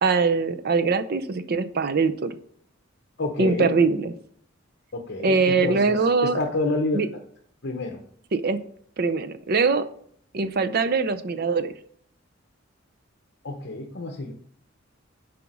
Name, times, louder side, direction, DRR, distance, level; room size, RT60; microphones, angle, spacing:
voice 1, 0.0-2.3 3.4-4.1 5.2-6.4 6.9-7.1 8.3-8.6 9.0-9.9 10.3-11.7, right 4 dB, 50° right, 11 dB, 0.5 m, -22 dB
voice 2, 3.2-3.8 4.9-7.0 7.6-8.0 13.4-14.3, left 2 dB, 55° left, 3 dB, 0.9 m, -28 dB
6.9 x 5.0 x 6.1 m, 0.62 s
head